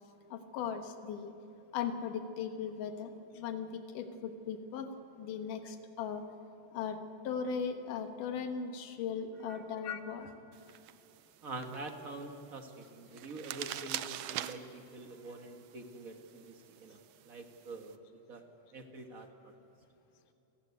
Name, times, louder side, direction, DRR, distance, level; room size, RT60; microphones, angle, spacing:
voice 1, 0.3-1.3 1.7-4.9 5.2-6.2 6.7-7.0 7.2-10.3, left 7 dB, 85° left, 7 dB, 2.8 m, -38 dB
sound 1, 10.5-17.9, right 12 dB, 75° right, 1.6 m, -46 dB
voice 2, 11.4-17.0 17.3-18.0 18.3-18.4 18.7-19.5, right 2 dB, 50° right, 4 dB, 1.0 m, -46 dB
29.5 x 15.0 x 9.5 m, 2.9 s
omnidirectional pair, 3.6 m